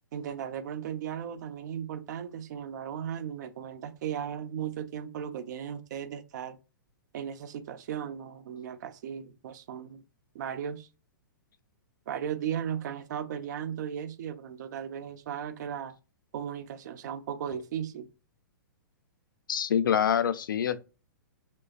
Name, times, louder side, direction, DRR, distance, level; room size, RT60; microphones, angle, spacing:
voice 1, 0.1-6.6 7.1-10.0 10.3-10.9 12.1-15.9 16.3-18.1, right 9 dB, 60° right, 0.7 m, -36 dB
voice 2, 19.5-20.8, left 8 dB, 80° left, 0.5 m, -26 dB
5.4 x 3.1 x 2.4 m
hypercardioid pair, 125°, 11 cm